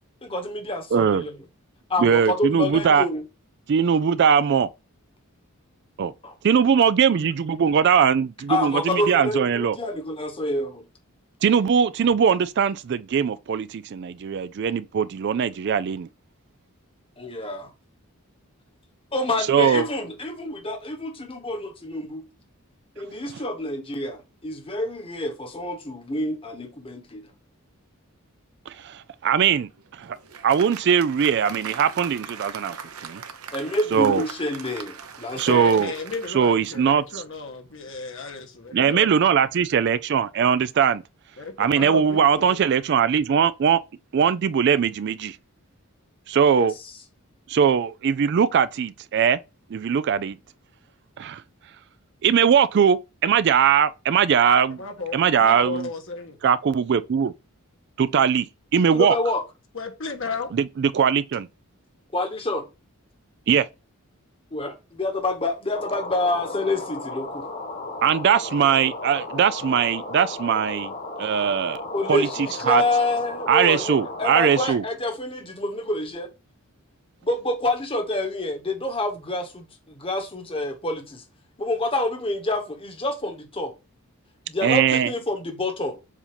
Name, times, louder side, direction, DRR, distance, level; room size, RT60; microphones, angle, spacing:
voice 1, 0.2-1.3 1.9-3.2 6.2-6.3 8.5-10.8 17.2-17.7 19.1-22.2 23.0-27.3 33.5-35.7 46.5-46.7 58.9-59.4 62.1-62.7 64.5-67.5 71.9-76.3 77.2-81.2 81.6-83.7 84.5-86.0, left 2 dB, 25° left, 1.2 m, -27 dB
voice 2, 0.9-1.3 2.0-3.1 3.7-4.7 6.0-6.1 6.4-9.8 11.4-16.1 19.5-19.9 28.7-29.7 30.0-30.2 30.4-32.8 33.0-33.2 33.9-34.2 35.4-35.9 36.3-37.0 38.7-41.0 41.6-43.8 44.1-45.4 46.3-46.7 47.5-49.4 49.7-50.4 51.2-51.4 52.2-54.8 55.1-55.9 56.4-57.3 58.0-58.5 58.7-59.2 60.5-61.5 63.5-63.7 68.0-70.9 71.2-71.8 72.1-72.3 72.7-72.8 73.5-74.8 84.6-85.1, right 7 dB, 50° right, 0.3 m, -20 dB
Applause, 29.7-37.2, right 6 dB, 85° right, 0.9 m, -40 dB
voice 3, 35.5-39.3 41.4-42.5 54.7-56.4 59.7-60.5, left 4 dB, 60° left, 1.4 m, -34 dB
sound 1, 65.7-74.7, left 2 dB, 45° left, 1.6 m, -35 dB
7.3 x 2.7 x 5.0 m
head